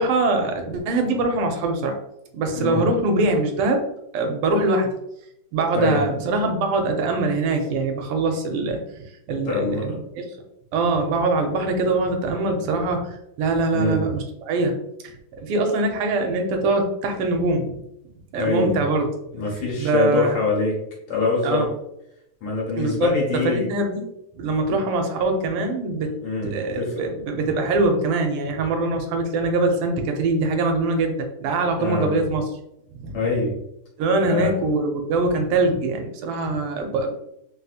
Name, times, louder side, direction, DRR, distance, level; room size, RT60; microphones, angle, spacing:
voice 1, 0.0-2.0 2.3-3.8 4.1-4.9 5.5-10.3 10.7-14.7 15.0-17.8 18.3-19.1 19.8-20.4 21.4-21.7 22.8-24.0 24.3-26.2 26.4-32.4 32.9-33.2 34.0-37.1, right 2 dB, 80° right, 4 dB, 1.5 m, -23 dB
voice 2, 2.5-2.8 5.7-6.0 9.4-10.0 11.1-11.2 13.7-14.0 18.4-18.8 19.3-20.8 21.1-21.7 22.4-23.7 24.7-24.8 26.2-26.9 31.8-32.1 33.1-33.5 34.2-34.5, left 3 dB, 75° left, -3 dB, 1.8 m, -24 dB
3.8 x 2.7 x 2.4 m, 0.80 s
omnidirectional pair, 2.4 m